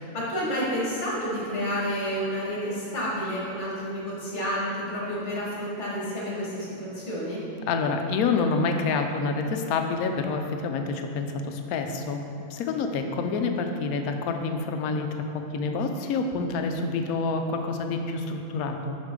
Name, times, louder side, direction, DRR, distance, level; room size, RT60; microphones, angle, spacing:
voice 1, 0.0-7.4, equal, 50° left, -5 dB, 1.8 m, -30 dB
voice 2, 7.7-12.2 12.5-19.0, left 4 dB, 75° left, 5 dB, 1.1 m, -27 dB
6.4 x 6.2 x 3.7 m, 2.7 s
omnidirectional pair, 1.6 m